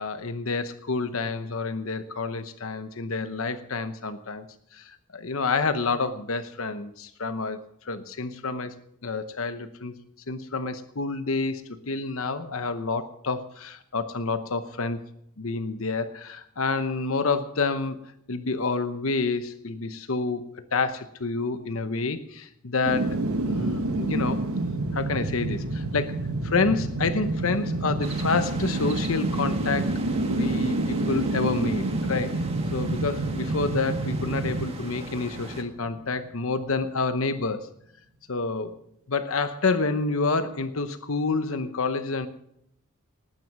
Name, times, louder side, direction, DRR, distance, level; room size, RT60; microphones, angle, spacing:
voice 1, 0.0-4.5 4.7-8.7 9.0-9.9 10.3-15.0 15.4-18.0 18.3-20.4 20.7-24.5 24.9-30.0 30.3-37.7 38.3-38.8 39.1-42.3, left 3 dB, 70° left, 10 dB, 0.9 m, -28 dB
sound 1, 22.9-35.9 36.3-36.4, right 2 dB, 85° right, 1.2 m, -28 dB
sound 2, 28.0-35.6, right 1 dB, 25° right, 1.7 m, -39 dB
19.5 x 9.5 x 6.0 m, 0.74 s
head